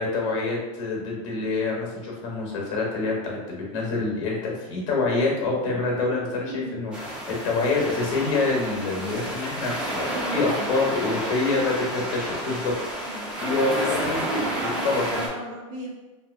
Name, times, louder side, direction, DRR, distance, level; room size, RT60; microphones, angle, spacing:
voice 1, 0.0-12.7 13.0-15.0, left 3 dB, 60° left, -2 dB, 0.9 m, -26 dB
voice 2, 6.5-6.8 10.1-10.7 13.1-15.9, right 2 dB, 75° right, -3 dB, 0.6 m, -34 dB
sound 1, 6.9-15.3, right 1 dB, 5° right, 0.4 m, -31 dB
2.8 x 2.6 x 2.5 m, 1.1 s
supercardioid pair, 175°, 18 cm